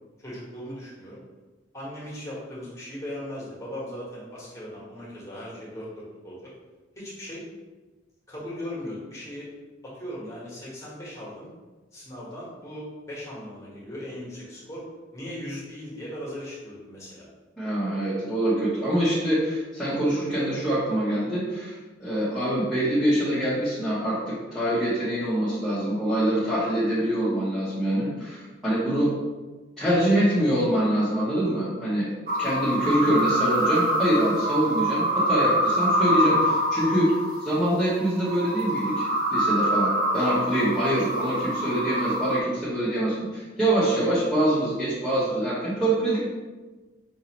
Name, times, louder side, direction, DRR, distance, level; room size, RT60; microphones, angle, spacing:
voice 1, 0.2-1.2 1.7-6.5 6.9-7.4 8.3-9.5 9.8-11.5 11.9-14.8 15.1-17.2, left 1 dB, 15° left, -6 dB, 1.2 m, -38 dB
voice 2, 17.6-29.1 29.8-32.1 32.4-37.1 37.4-46.3, right 1 dB, ahead, -12 dB, 0.8 m, -25 dB
sound 1, 32.3-42.4, right 1 dB, 50° right, 0.5 m, -25 dB
4.8 x 2.7 x 2.9 m, 1.3 s
head